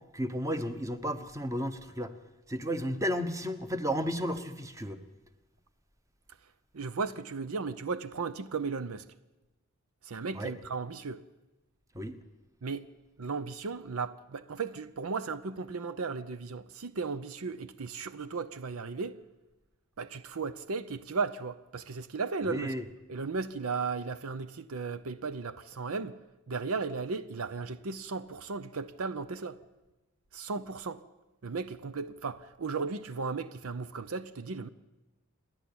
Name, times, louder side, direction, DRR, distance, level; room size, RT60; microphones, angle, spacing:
voice 1, 0.1-2.1 2.5-5.0 10.3-10.5 11.9-12.2 22.4-22.8, equal, 15° right, 1.0 m, -33 dB
voice 2, 6.7-9.1 10.0-11.2 12.6-12.9 13.2-19.2 20.0-22.8 23.1-26.2 26.5-29.6 30.3-31.0 31.4-34.7, right 4 dB, 75° right, 0.6 m, -35 dB
28.0 x 10.5 x 8.6 m
head